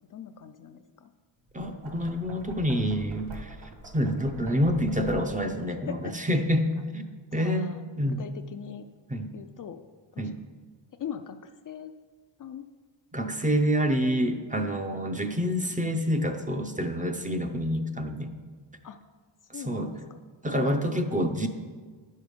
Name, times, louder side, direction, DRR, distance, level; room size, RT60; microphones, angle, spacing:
voice 1, 0.1-1.1 5.7-6.3 7.3-7.8 8.1-8.9 9.3-9.8 10.1-10.3 10.9-11.9 12.4-12.7 13.2-13.3 14.9-15.0 18.8-19.1 19.5-20.1, left 8 dB, 45° left, 8 dB, 0.4 m, -41 dB
Knock, 1.4-5.6, right 1 dB, 55° right, 1.7 m, -44 dB
voice 2, 1.5-3.6 3.9-7.0 7.3-8.2 9.1-9.3 10.2-10.3 13.1-18.3 19.7-19.9 20.4-21.5, equal, 15° right, 6 dB, 0.5 m, -27 dB
10.0 x 6.4 x 5.2 m, 1.5 s
cardioid pair, 135°, 48 cm